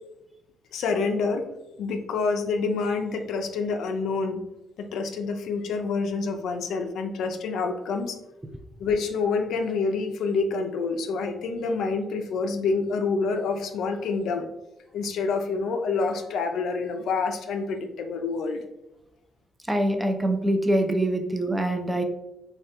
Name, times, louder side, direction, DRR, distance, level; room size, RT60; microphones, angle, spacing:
voice 1, 0.7-1.5 1.8-4.4 4.8-8.2 8.8-14.5 14.9-18.7, left 4 dB, 75° left, 5 dB, 0.3 m, -27 dB
voice 2, 19.7-22.0, right 1 dB, 10° right, 5 dB, 0.4 m, -24 dB
3.2 x 2.2 x 2.8 m, 0.92 s
cardioid pair, 90°, 0 cm